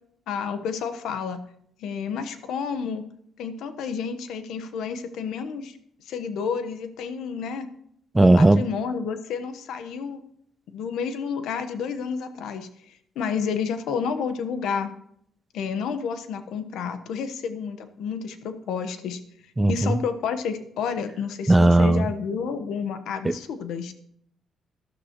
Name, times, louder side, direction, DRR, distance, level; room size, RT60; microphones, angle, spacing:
voice 1, 0.3-1.4 1.8-3.0 3.4-5.8 6.0-7.7 8.2-10.2 10.7-14.9 15.5-19.2 19.7-23.9, left 6 dB, 80° left, 1.1 m, -30 dB
voice 2, 8.1-8.7 19.6-20.0 21.5-22.1 23.2-23.3, right 2 dB, 15° right, 0.4 m, -17 dB
13.0 x 12.0 x 3.0 m
cardioid pair, 90°, 0 cm